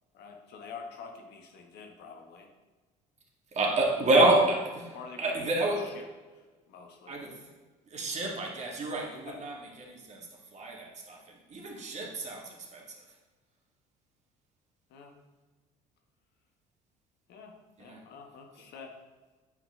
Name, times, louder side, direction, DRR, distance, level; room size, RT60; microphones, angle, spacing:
voice 1, 0.1-2.5 4.9-6.0 6.3-7.2 9.3-9.4 14.9-15.1 17.3-19.0, left 5 dB, 65° left, 3 dB, 1.4 m, -47 dB
voice 2, 3.5-5.9 7.1-7.4 7.9-13.0 17.8-18.0, right 2 dB, 40° right, -1 dB, 2.2 m, -29 dB
9.8 x 5.1 x 3.8 m, 1.3 s
hypercardioid pair, 65°, 18 cm